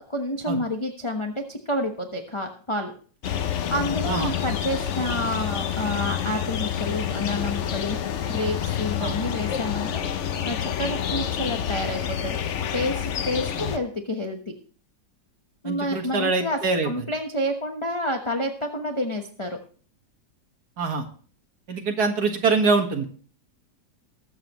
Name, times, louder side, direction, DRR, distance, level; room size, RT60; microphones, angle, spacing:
voice 1, 0.1-2.9 3.7-8.0 8.3-12.4 12.7-14.4 15.6-19.6, left 1 dB, 20° left, 2 dB, 0.9 m, -29 dB
sound 1, 3.2-13.8, left 9 dB, 60° left, 0.8 m, -28 dB
voice 2, 15.6-16.9 20.8-21.0 21.7-23.0, right 4 dB, 55° right, 4 dB, 2.2 m, -24 dB
20.5 x 7.5 x 3.1 m, 0.43 s
omnidirectional pair, 2.0 m